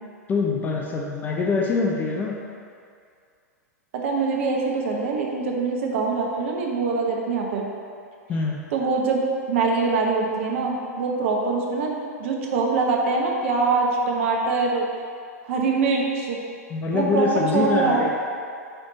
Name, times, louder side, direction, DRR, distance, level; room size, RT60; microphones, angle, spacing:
voice 1, 0.3-2.3 8.3-8.6 16.7-18.1, left 4 dB, 20° left, -1 dB, 0.7 m, -24 dB
voice 2, 4.0-7.7 8.7-11.9 12.2-14.8 15.4-16.4 16.9-17.3 17.5-18.1, right 4 dB, 50° right, 0 dB, 1.0 m, -23 dB
8.9 x 3.5 x 4.1 m, 2.3 s
figure-of-eight pair, 100°, 9 cm